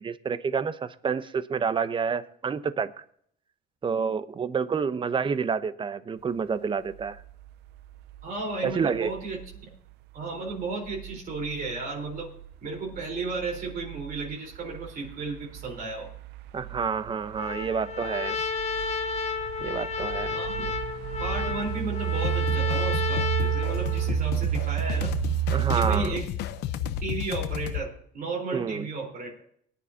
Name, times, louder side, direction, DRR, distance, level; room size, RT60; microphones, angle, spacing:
voice 1, 0.0-3.0 3.8-7.2 8.6-9.1 16.5-18.4 19.6-20.3 25.5-26.2 28.5-28.9, right 6 dB, 30° right, 14 dB, 0.8 m, -29 dB
sound 1, 6.9-26.0, right 13 dB, 80° right, 0.6 m, -32 dB
voice 2, 8.2-9.7 10.1-12.3 12.6-16.1 20.3-20.8 21.2-25.2 25.7-26.3 27.0-29.4, right 3 dB, 60° right, -1 dB, 4.0 m, -34 dB
Trumpet, 17.4-24.2, left 5 dB, 40° left, 1.4 m, -32 dB
sound 2, 22.2-27.9, left 9 dB, 85° left, 0.8 m, -33 dB
20.5 x 10.0 x 2.8 m, 0.65 s
cardioid pair, 110°, 17 cm